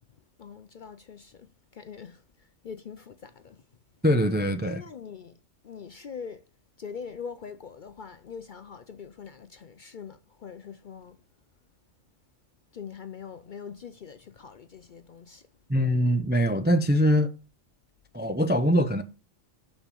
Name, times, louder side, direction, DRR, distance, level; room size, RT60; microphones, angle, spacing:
voice 1, 0.4-3.6 4.6-5.3 5.6-6.4 6.8-11.2 12.7-15.5, left 6 dB, 55° left, 0.6 m, -43 dB
voice 2, 4.0-4.8 15.7-17.4 18.1-19.0, equal, 15° right, 0.4 m, -23 dB
7.3 x 5.4 x 6.9 m
omnidirectional pair, 1.3 m